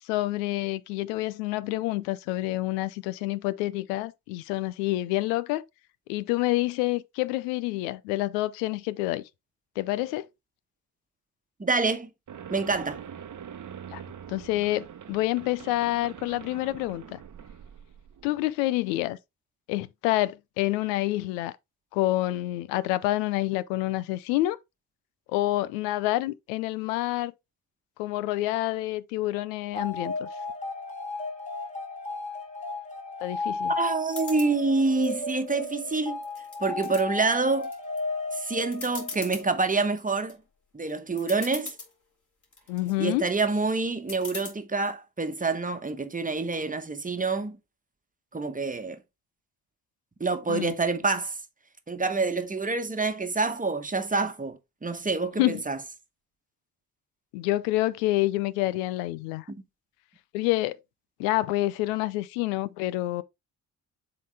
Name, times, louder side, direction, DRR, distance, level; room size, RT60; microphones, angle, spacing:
voice 1, 0.0-5.6 6.1-9.2 9.8-10.3 13.9-14.0 14.3-17.2 18.2-19.2 19.7-21.6 21.9-24.6 25.3-27.3 28.0-30.3 33.2-33.7 42.7-43.2 50.5-50.7 55.4-55.6 57.3-59.4 60.3-60.8 61.2-63.2, left 17 dB, 80° left, 0.6 m, -28 dB
voice 2, 11.6-12.1 12.5-13.0 33.7-36.2 36.6-37.7 38.3-40.4 40.7-41.7 43.0-47.6 48.3-49.0 50.2-51.4 51.9-55.8 59.5-59.6, right 3 dB, 15° right, 1.1 m, -27 dB
sound 1, 12.3-18.3, right 8 dB, 40° right, 0.9 m, -44 dB
sound 2, 29.7-39.5, left 3 dB, 15° left, 1.9 m, -34 dB
sound 3, 34.1-34.5 35.0-35.8 36.2-37.0 37.5-38.0 38.3-38.4 38.7-39.4 40.0-40.3 40.9-41.0 41.2-41.9 42.4-42.9 44.1-44.5, left 4 dB, 40° left, 2.6 m, -40 dB
7.3 x 3.9 x 3.3 m
hypercardioid pair, 45°, 48 cm